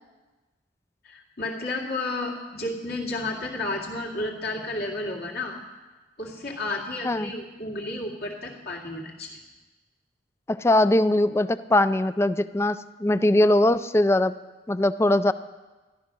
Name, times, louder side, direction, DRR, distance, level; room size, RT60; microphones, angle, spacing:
voice 1, 1.0-5.6 6.2-9.4, left 2 dB, 60° left, -2 dB, 2.4 m, -32 dB
voice 2, 10.5-14.3 14.7-15.3, left 1 dB, 15° left, 14 dB, 0.3 m, -21 dB
13.0 x 11.5 x 6.1 m, 1.2 s
head